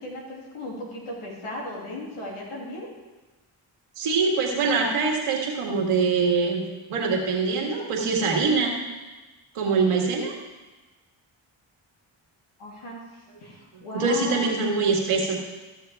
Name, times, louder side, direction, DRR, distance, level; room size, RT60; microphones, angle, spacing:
voice 1, 0.0-2.9 12.6-14.5, left 1 dB, 85° left, -3 dB, 2.6 m, -36 dB
voice 2, 4.0-6.6 6.9-8.7 9.6-10.3 13.9-15.4, right 4 dB, 90° right, 0 dB, 1.8 m, -23 dB
14.0 x 6.6 x 3.4 m, 1.2 s
supercardioid pair, 45°, 49 cm